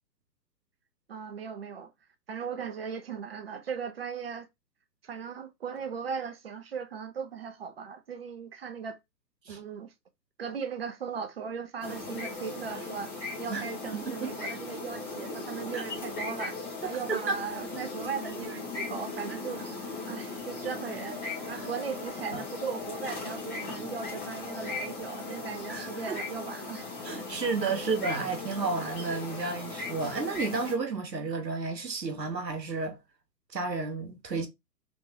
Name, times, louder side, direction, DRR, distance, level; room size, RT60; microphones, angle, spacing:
voice 1, 1.1-1.9 2.3-4.5 5.0-9.0 9.5-9.9 10.4-16.6 16.8-19.6 20.1-21.2 21.5-26.8, right 6 dB, 40° right, 0.6 m, -38 dB
sound 1, 11.8-30.8, left 3 dB, 20° left, 1.4 m, -38 dB
voice 2, 13.9-14.3 15.7-15.8 16.8-17.4 21.5-21.7 22.3-22.4 25.7-26.2 27.0-33.0 33.5-34.5, right 4 dB, 90° right, 1.0 m, -32 dB
3.4 x 3.1 x 2.7 m
figure-of-eight pair, 125°, 49 cm